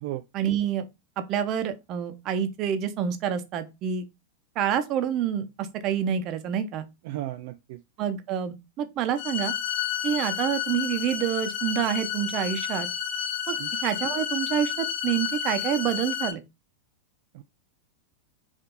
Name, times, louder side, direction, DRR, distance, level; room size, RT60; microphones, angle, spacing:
voice 1, 0.3-0.9 1.2-4.1 4.6-6.9 8.0-9.5 10.0-12.9 13.5-16.4, right 9 dB, 45° right, 0.8 m, -27 dB
voice 2, 7.1-7.8 13.6-13.7 17.4-17.5, right 15 dB, 65° right, 0.4 m, -34 dB
sound 1, 9.2-16.3, left 9 dB, 50° left, 1.0 m, -31 dB
4.7 x 2.7 x 3.8 m
hypercardioid pair, 120°, 0 cm